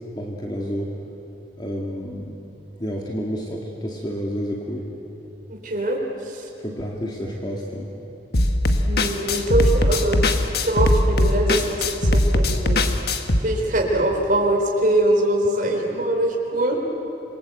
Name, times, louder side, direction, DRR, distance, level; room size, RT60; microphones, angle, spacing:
voice 1, 0.1-0.9 1.6-2.4 2.8-4.9 6.6-7.9, equal, 25° left, -1 dB, 2.1 m, -30 dB
voice 2, 5.5-6.0 6.2-6.4 8.9-10.2 10.6-12.8 13.4-16.8, right 1 dB, 50° right, 0 dB, 4.2 m, -22 dB
sound 1, 8.3-13.4, left 1 dB, 60° left, 1.4 m, -20 dB
27.0 x 23.0 x 8.2 m, 2.9 s
head